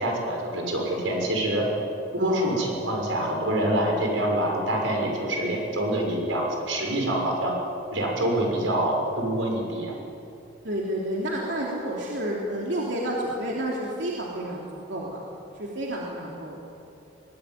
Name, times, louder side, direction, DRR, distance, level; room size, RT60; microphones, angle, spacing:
voice 1, 0.0-1.7 2.1-7.5 7.9-9.9, right 1 dB, 90° right, 0 dB, 6.3 m, -26 dB
voice 2, 2.2-2.8 10.6-15.2 15.6-16.6, right 1 dB, 65° right, -4 dB, 3.3 m, -30 dB
24.5 x 18.5 x 9.4 m, 2.7 s
head